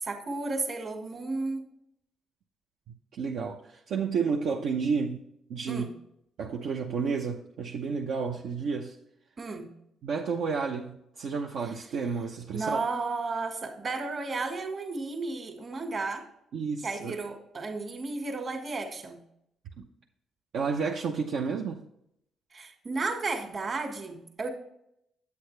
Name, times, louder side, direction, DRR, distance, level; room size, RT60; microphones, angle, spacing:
voice 1, 0.0-1.6 5.7-5.9 9.4-9.7 12.5-16.2 16.8-19.2 22.5-24.5, right 3 dB, 45° right, 4 dB, 1.9 m, -33 dB
voice 2, 2.9-5.2 5.5-5.9 6.4-8.9 10.0-12.8 16.5-17.2 19.8-19.9 20.5-21.8, right 5 dB, 75° right, -1 dB, 0.8 m, -31 dB
8.6 x 8.5 x 3.3 m, 0.76 s
cardioid pair, 90°, 0 cm